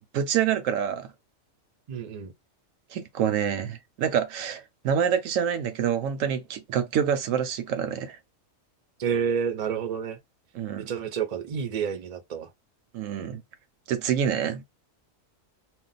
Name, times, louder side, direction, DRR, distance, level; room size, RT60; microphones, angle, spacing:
voice 1, 0.1-1.1 2.9-8.2 10.5-10.9 12.9-13.4 13.9-14.6, right 8 dB, 80° right, 0.9 m, -27 dB
voice 2, 1.9-2.3 9.0-10.2 10.8-12.5, right 7 dB, 50° right, 0.5 m, -29 dB
2.4 x 2.1 x 3.8 m
omnidirectional pair, 1.4 m